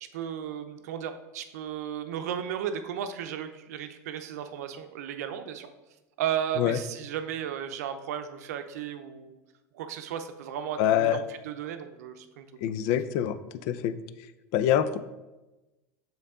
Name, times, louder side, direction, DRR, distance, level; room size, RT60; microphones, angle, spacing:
voice 1, 0.1-5.7 6.2-9.4 9.7-12.5, right 9 dB, 85° right, 8 dB, 0.6 m, -34 dB
voice 2, 10.8-11.2 12.6-13.3 13.7-13.9 14.5-15.0, left 10 dB, 65° left, 13 dB, 0.4 m, -24 dB
6.8 x 3.9 x 3.7 m, 1.1 s
supercardioid pair, 120°, 8 cm